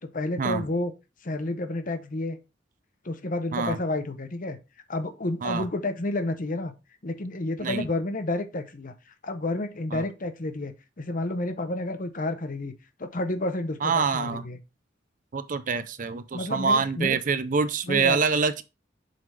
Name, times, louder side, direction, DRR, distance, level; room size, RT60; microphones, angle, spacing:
voice 1, 0.0-0.9 1.2-2.4 3.0-4.6 4.9-6.7 7.0-12.7 13.0-14.6 16.3-17.2 17.8-18.2, left 2 dB, 45° left, 0.9 m, -30 dB
voice 2, 13.8-14.4 15.3-18.6, right 5 dB, 45° right, 0.5 m, -25 dB
7.7 x 3.9 x 3.3 m
head